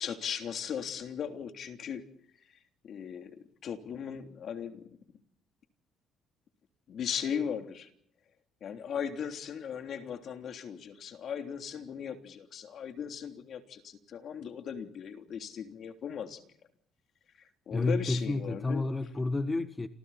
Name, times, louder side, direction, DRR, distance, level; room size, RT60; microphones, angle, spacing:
voice 1, 0.0-2.1 2.4-2.5 2.8-5.0 6.9-7.9 8.6-16.4 17.4-18.9, left 8 dB, 55° left, 3.3 m, -38 dB
voice 2, 17.7-19.9, left 2 dB, 20° left, 1.5 m, -30 dB
29.0 x 28.0 x 4.3 m
cardioid pair, 115°, 0 cm